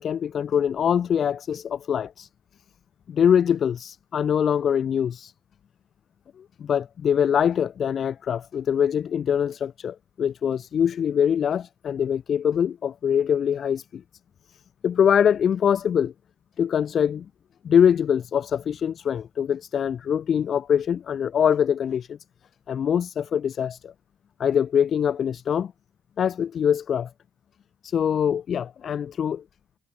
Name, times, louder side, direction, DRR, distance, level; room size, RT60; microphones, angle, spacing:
voice 1, 0.0-2.3 3.1-5.3 6.4-14.0 14.8-16.1 16.6-17.3 17.6-22.2 22.7-23.9 24.4-25.7 26.2-27.1 27.8-29.4, left 8 dB, 55° left, 1.0 m, -23 dB
cardioid pair, 90°, 0 cm